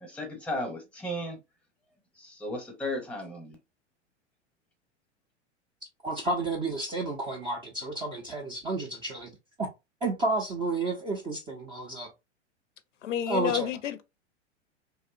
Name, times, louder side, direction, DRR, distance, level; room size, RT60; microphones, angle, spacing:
voice 1, 0.0-1.4 2.2-3.6, left 1 dB, 5° left, 0.7 m, -35 dB
voice 2, 6.0-9.3 9.6-9.7 10.0-12.1 13.3-13.7, right 2 dB, 15° right, 0.3 m, -31 dB
voice 3, 13.0-14.0, left 11 dB, 85° left, 0.5 m, -30 dB
2.7 x 2.0 x 2.4 m
hypercardioid pair, 100°, 36 cm